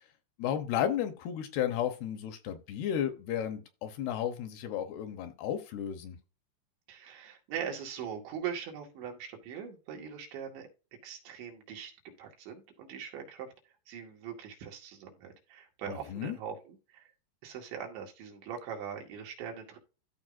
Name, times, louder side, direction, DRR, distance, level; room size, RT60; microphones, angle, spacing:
voice 1, 0.4-6.2 15.9-16.4, left 10 dB, 75° left, 2.7 m, -33 dB
voice 2, 6.9-10.7 11.0-13.5 13.9-17.1 17.4-19.8, right 7 dB, 85° right, 4.3 m, -41 dB
14.0 x 5.0 x 2.6 m
omnidirectional pair, 5.0 m